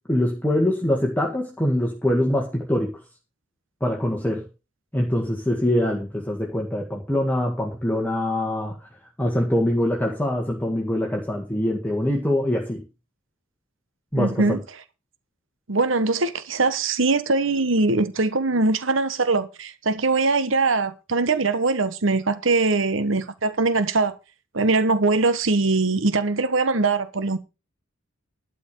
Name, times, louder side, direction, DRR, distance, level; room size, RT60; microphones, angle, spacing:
voice 1, 0.1-3.0 3.8-4.5 4.9-8.8 9.2-12.8 14.1-14.6, left 1 dB, 10° left, 1.8 m, -24 dB
voice 2, 14.2-14.6 15.7-24.1 24.5-27.4, right 3 dB, 70° right, 1.2 m, -22 dB
12.0 x 5.0 x 8.4 m
head